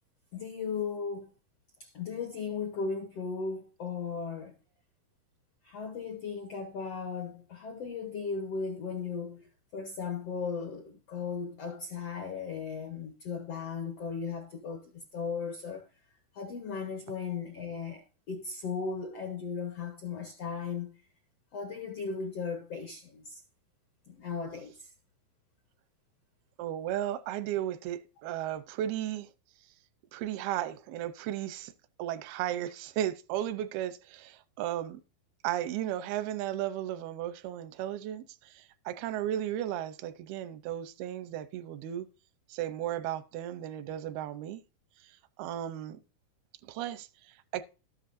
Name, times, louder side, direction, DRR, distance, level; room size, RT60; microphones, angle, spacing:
voice 1, 0.3-1.3 1.8-4.6 5.6-15.9 16.3-21.0 21.5-23.4 24.1-24.7, left 5 dB, 75° left, 1.4 m, -36 dB
voice 2, 26.6-29.3 30.1-31.7 32.0-35.0 35.4-42.1 42.5-44.6 45.4-46.0 46.6-47.6, right 12 dB, 85° right, 2.6 m, -35 dB
13.0 x 10.5 x 2.6 m
omnidirectional pair, 4.3 m